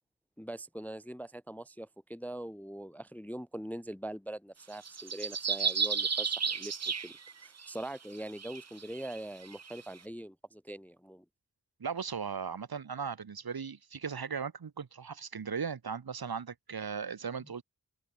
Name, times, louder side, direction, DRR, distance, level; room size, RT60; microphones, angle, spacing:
voice 1, 0.4-6.8 7.0-7.1 7.4-11.2, right 1 dB, 5° left, 0.4 m, -42 dB
sound 1, 4.7-7.7 8.3-9.8, right 6 dB, 45° right, 0.8 m, -33 dB
voice 2, 11.8-17.6, right 6 dB, 80° right, 1.6 m, -37 dB
open air
wide cardioid pair, 90°, 36 cm